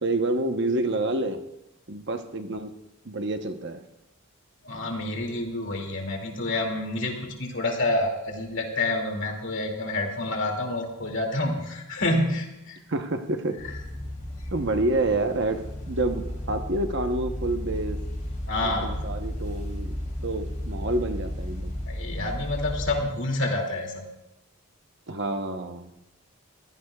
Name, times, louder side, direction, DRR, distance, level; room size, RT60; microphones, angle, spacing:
voice 1, 0.0-1.4 1.9-2.7 3.0-3.8 12.9-13.5 14.5-15.6 15.9-16.2 16.5-18.0 18.6-20.0 20.2-21.7 25.1-25.9, right 2 dB, 50° right, 6 dB, 1.0 m, -28 dB
voice 2, 4.6-12.8 18.5-19.0 21.9-24.0, left 2 dB, 55° left, 2 dB, 2.5 m, -28 dB
sound 1, 13.6-23.0, left 1 dB, 35° left, 3.3 m, -34 dB
22.5 x 16.5 x 2.4 m, 0.90 s
head